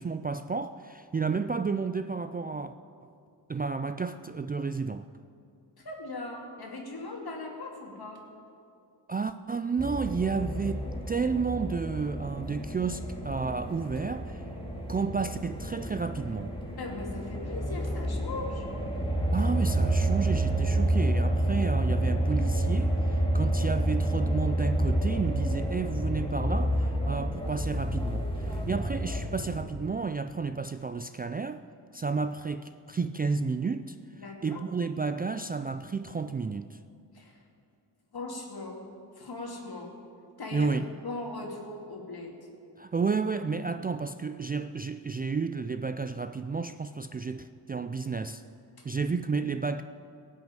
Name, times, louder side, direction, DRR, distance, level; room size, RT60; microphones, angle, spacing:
voice 1, 0.0-2.7 3.5-5.1 9.1-14.4 14.9-16.6 19.3-31.6 31.9-36.8 40.5-40.9 42.8-48.4 48.8-49.8, right 4 dB, 25° right, 0.3 m, -31 dB
voice 2, 5.8-8.2 16.8-18.7 34.2-34.6 37.1-37.4 38.1-38.8 39.2-39.9 40.4-40.7 41.0-42.3 48.8-48.9, left 3 dB, 60° left, 2.5 m, -39 dB
sound 1, 9.8-29.6, right 1 dB, 10° left, 2.1 m, -29 dB
17.5 x 6.1 x 8.9 m
cardioid pair, 65°, 43 cm